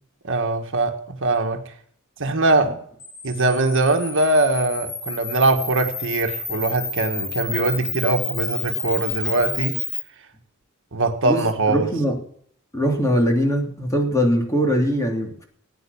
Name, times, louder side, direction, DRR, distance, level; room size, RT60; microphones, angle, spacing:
voice 1, 0.2-1.6 2.2-2.8 3.2-9.8 10.9-11.9, right 2 dB, 60° right, 1.7 m, -21 dB
Camera, 3.0-10.0, left 4 dB, 50° left, 4.8 m, -30 dB
voice 2, 11.7-12.2 12.7-15.5, equal, 15° left, 3.1 m, -21 dB
17.0 x 9.7 x 7.1 m
head